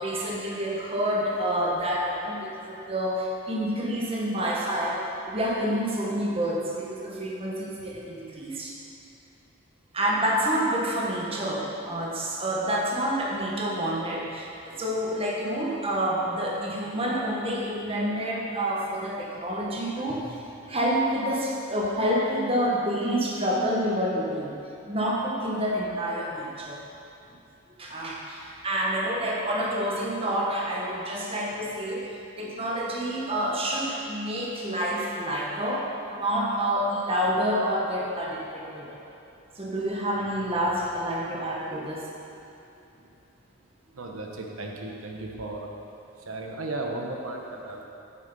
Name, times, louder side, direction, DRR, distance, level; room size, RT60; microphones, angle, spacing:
voice 1, 0.0-5.0 5.2-8.7 9.9-20.4 20.7-24.6 24.9-26.8 27.8-39.0 39.5-42.1, equal, 25° right, -3 dB, 1.2 m, -28 dB
voice 2, 43.9-45.7 46.2-47.8, right 2 dB, 90° right, 0 dB, 1.0 m, -35 dB
8.4 x 6.6 x 5.4 m, 2.7 s
head